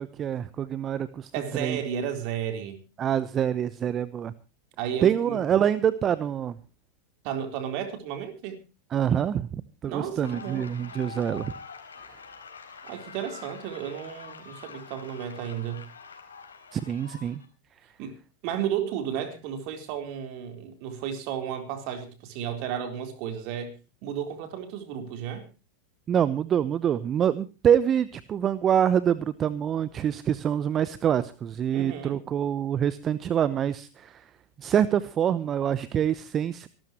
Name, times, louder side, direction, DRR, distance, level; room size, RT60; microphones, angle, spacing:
voice 1, 0.0-1.3 1.6-1.8 3.0-4.3 5.0-6.6 8.9-11.5 16.7-17.4 26.1-34.2 34.6-36.7, right 9 dB, 30° right, 0.8 m, -25 dB
voice 2, 1.3-2.8 4.8-5.4 7.2-8.6 9.8-10.7 12.8-15.9 18.0-18.2 18.4-23.8 24.0-25.5 31.7-32.2, right 9 dB, 50° right, 4.0 m, -33 dB
sound 1, 10.2-17.4, left 5 dB, 85° left, 4.4 m, -45 dB
25.5 x 13.0 x 3.0 m
hypercardioid pair, 90°, 0 cm